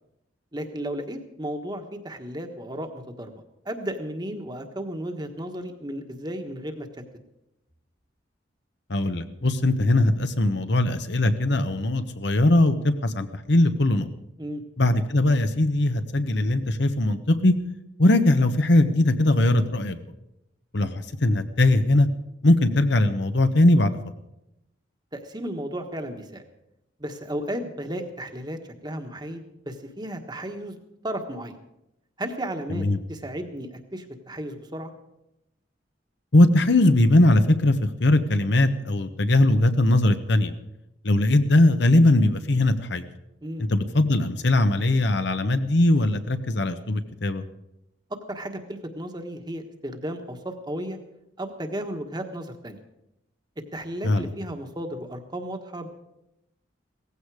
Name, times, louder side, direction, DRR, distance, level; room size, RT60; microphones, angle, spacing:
voice 1, 0.5-6.9 14.4-14.6 25.1-26.4 27.0-30.7 31.0-31.6 32.2-34.9 43.4-43.6 48.1-51.0 51.4-52.8 53.7-55.9, right 1 dB, 20° right, 5 dB, 1.4 m, -34 dB
voice 2, 8.9-14.1 14.8-17.5 18.0-20.0 20.7-22.1 22.4-24.0 32.7-33.0 36.3-40.5 41.0-43.0 43.7-47.4 54.0-54.3, left 1 dB, 60° left, 9 dB, 1.0 m, -20 dB
17.5 x 15.0 x 4.9 m, 0.87 s
head